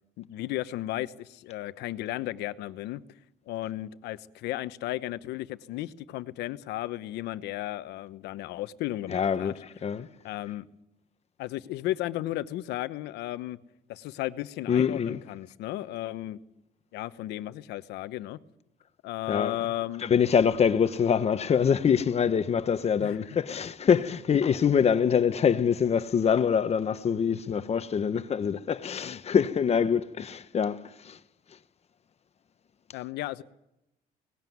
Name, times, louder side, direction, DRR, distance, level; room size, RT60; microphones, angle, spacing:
voice 1, 0.2-3.0 3.5-9.5 10.2-10.7 11.4-13.6 13.9-16.4 16.9-18.4 19.0-20.1 23.0-23.3 32.9-33.4, left 15 dB, 85° left, 1.0 m, -34 dB
voice 2, 9.1-9.5 9.8-10.1 14.7-15.2 19.3-19.6 20.0-31.2, left 7 dB, 40° left, 1.1 m, -25 dB
19.0 x 18.5 x 9.4 m
cardioid pair, 110°, 17 cm